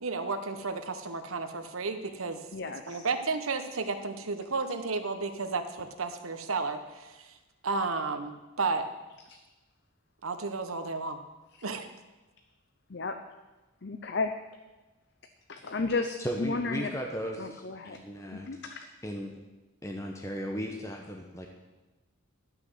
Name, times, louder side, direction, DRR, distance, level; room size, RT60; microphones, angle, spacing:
voice 1, 0.0-2.4 2.9-7.3 7.6-8.8 10.2-11.2 11.6-11.9, right 4 dB, 85° right, 8 dB, 1.1 m, -32 dB
voice 2, 2.5-3.0 9.3-9.4 12.9-13.1 13.8-14.3 15.5-16.9 17.4-18.8, left 3 dB, 55° left, 6 dB, 0.6 m, -33 dB
voice 3, 16.2-18.5 19.0-19.3 19.8-21.5, equal, 15° left, 1 dB, 0.9 m, -36 dB
12.0 x 6.0 x 7.9 m, 1.1 s
head